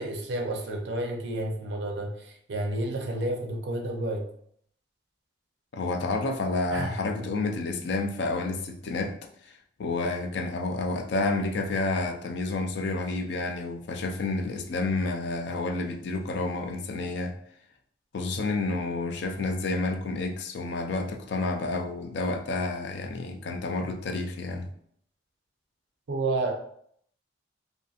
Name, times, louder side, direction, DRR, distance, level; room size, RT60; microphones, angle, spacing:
voice 1, 0.0-4.3 6.7-7.0 26.1-26.5, right 2 dB, 65° right, 0.5 m, -30 dB
voice 2, 5.7-17.4 18.1-24.7, left 3 dB, 65° left, 0.4 m, -30 dB
2.6 x 2.5 x 2.4 m
head